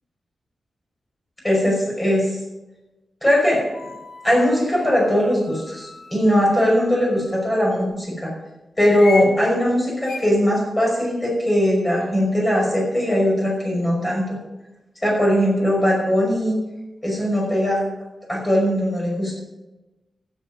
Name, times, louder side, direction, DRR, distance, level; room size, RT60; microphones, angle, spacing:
voice 1, 1.4-2.4 3.2-3.7 4.2-8.3 8.8-14.4 15.0-16.6 17.0-17.8 18.3-19.4, equal, 15° left, -2 dB, 5.5 m, -20 dB
sound 1, 3.7-7.5 8.8-9.3 10.1-10.2, left 3 dB, 80° left, 1.8 m, -36 dB
13.0 x 10.5 x 5.2 m, 1.0 s
wide cardioid pair, 120°, 0 cm